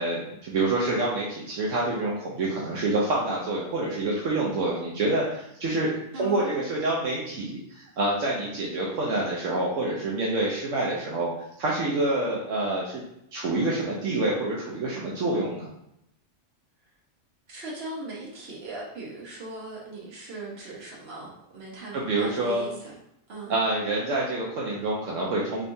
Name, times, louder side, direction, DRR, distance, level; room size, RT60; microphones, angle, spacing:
voice 1, 0.0-11.3 11.6-13.0 13.3-15.7 21.9-22.7 23.5-25.7, right 2 dB, 75° right, -4 dB, 1.0 m, -27 dB
voice 2, 6.1-6.7 17.5-22.9 23.3-23.6, right 2 dB, 55° right, -3 dB, 1.2 m, -39 dB
3.6 x 3.3 x 2.6 m, 0.78 s
omnidirectional pair, 1.3 m